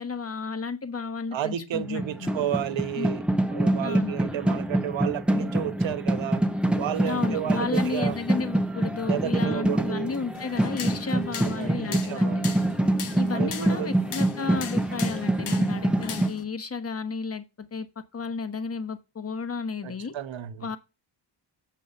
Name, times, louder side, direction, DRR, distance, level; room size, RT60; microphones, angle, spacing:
voice 1, 0.0-2.3 3.0-3.1 3.8-4.2 7.1-12.4 13.1-20.1 20.6-20.8, left 5 dB, 30° left, 1.1 m, -33 dB
voice 2, 1.3-3.2 3.5-6.4 6.8-8.2 9.1-10.1 11.1-12.5 13.3-13.9 19.8-20.7, right 11 dB, 65° right, 1.0 m, -32 dB
sound 1, 1.8-16.3, right 1 dB, ahead, 0.7 m, -26 dB
sound 2, 10.3-16.4, left 8 dB, 75° left, 1.3 m, -39 dB
7.6 x 5.4 x 5.4 m
cardioid pair, 80°, 50 cm